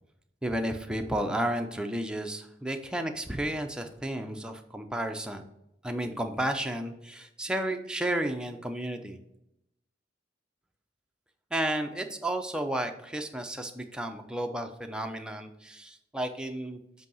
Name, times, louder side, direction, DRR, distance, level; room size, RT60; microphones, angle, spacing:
voice 1, 0.4-5.4 5.8-9.2 11.5-16.8, right 1 dB, 5° right, 5 dB, 0.5 m, -32 dB
7.9 x 2.8 x 5.5 m, 0.84 s
head